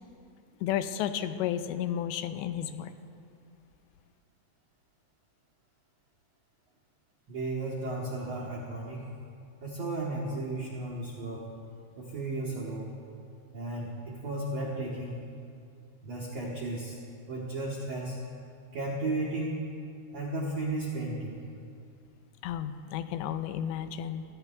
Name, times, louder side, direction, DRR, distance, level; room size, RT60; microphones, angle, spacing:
voice 1, 0.6-2.9 22.4-24.3, left 10 dB, 85° left, 9 dB, 2.8 m, -32 dB
voice 2, 7.3-9.0 9.6-11.4 12.0-12.9 13.5-15.2 16.0-17.0 17.3-18.2 18.7-19.6 20.1-21.4, right 2 dB, 85° right, -3 dB, 1.4 m, -34 dB
25.5 x 14.5 x 2.3 m, 2.4 s
omnidirectional pair, 5.1 m